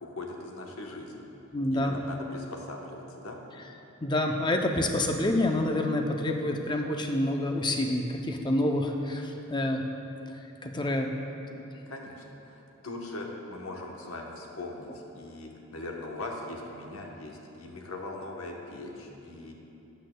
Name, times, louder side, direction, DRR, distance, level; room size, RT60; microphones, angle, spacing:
voice 1, 0.0-1.2 1.7-3.4 11.9-19.5, left 2 dB, 80° left, 0 dB, 1.1 m, -40 dB
voice 2, 1.5-1.9 4.0-9.2 9.5-9.8 10.6-11.1 11.5-11.6, left 1 dB, 20° left, 3 dB, 0.5 m, -27 dB
12.5 x 8.3 x 2.3 m, 2.8 s
head